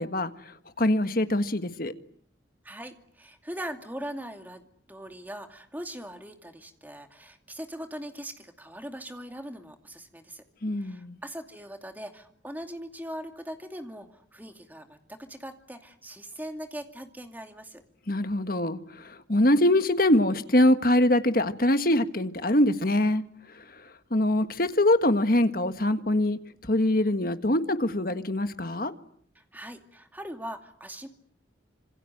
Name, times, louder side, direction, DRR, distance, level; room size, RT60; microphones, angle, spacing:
voice 1, 0.0-1.9 10.6-11.2 18.1-23.2 24.1-28.9, left 1 dB, 50° left, 9 dB, 1.6 m, -24 dB
voice 2, 2.6-10.4 10.8-17.8 29.3-31.1, equal, 10° right, 5 dB, 2.5 m, -41 dB
27.5 x 26.5 x 7.9 m, 0.64 s
head